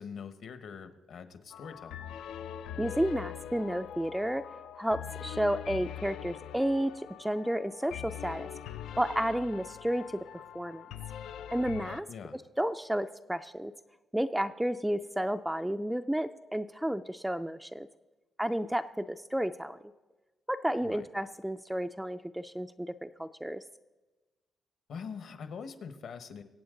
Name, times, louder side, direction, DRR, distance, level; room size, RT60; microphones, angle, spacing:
voice 1, 0.0-2.0 12.1-12.4 20.8-21.1 24.9-26.4, left 6 dB, 60° left, 9 dB, 1.2 m, -43 dB
sound 1, 1.5-12.0, left 10 dB, 90° left, 0.4 m, -43 dB
voice 2, 2.8-4.4 4.8-10.9 11.5-12.1 12.3-13.7 14.1-17.9 18.4-19.8 20.5-23.6, right 1 dB, 5° right, 9 dB, 0.3 m, -32 dB
24.0 x 8.5 x 3.8 m, 1.2 s
cardioid pair, 155°, 0 cm